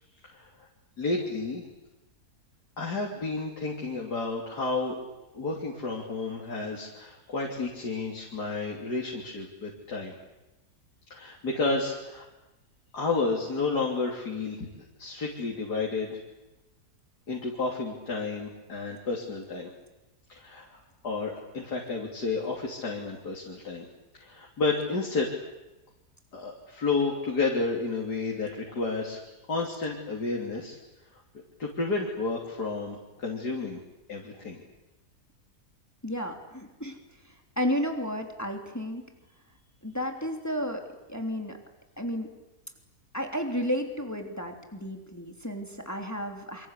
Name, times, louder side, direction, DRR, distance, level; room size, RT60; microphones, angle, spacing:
voice 1, 0.3-0.7 1.0-1.6 2.8-5.0 5.3-10.1 11.1-12.3 12.9-14.7 15.0-16.2 17.3-19.7 20.3-23.9 24.1-25.3 26.3-29.2 29.5-30.8 31.6-33.8 34.1-34.6, left 3 dB, 85° left, -1 dB, 3.8 m, -31 dB
voice 2, 36.0-37.0 37.2-39.0 39.8-40.8 41.1-41.6 42.0-42.3 43.1-46.7, equal, 10° left, 4 dB, 3.2 m, -32 dB
28.0 x 25.0 x 8.4 m, 0.99 s
omnidirectional pair, 1.7 m